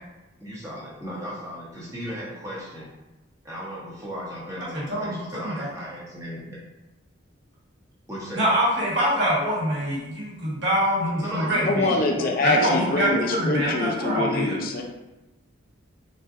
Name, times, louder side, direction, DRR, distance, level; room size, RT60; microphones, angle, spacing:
voice 1, 0.4-2.9 3.4-6.6 8.1-8.6 11.2-12.5 12.9-13.2, equal, 15° right, -6 dB, 0.7 m, -36 dB
voice 2, 4.7-5.7 8.3-11.9 12.4-14.6, equal, 60° right, -6 dB, 1.2 m, -25 dB
voice 3, 11.7-14.8, left 2 dB, 45° left, 1 dB, 0.5 m, -24 dB
3.9 x 3.6 x 2.5 m, 1.0 s
head